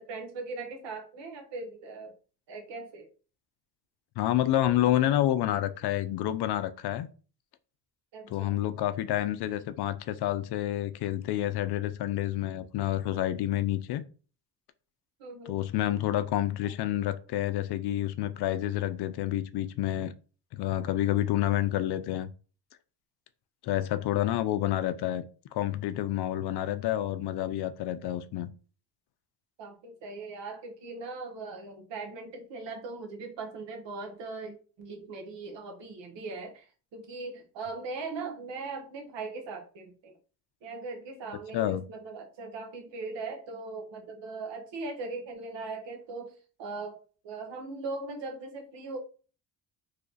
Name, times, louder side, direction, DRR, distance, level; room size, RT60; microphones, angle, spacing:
voice 1, 0.0-2.1 2.5-3.1 8.1-8.6 15.2-15.6 16.6-16.7 29.6-40.1 40.6-46.3 46.6-49.0, right 3 dB, 70° right, 1.2 m, -39 dB
voice 2, 4.2-7.1 8.3-14.0 15.5-20.1 20.5-22.3 23.6-25.2 25.5-28.5 41.5-41.8, left 13 dB, 60° left, 0.5 m, -29 dB
3.2 x 2.3 x 3.9 m
cardioid pair, 100°, 45 cm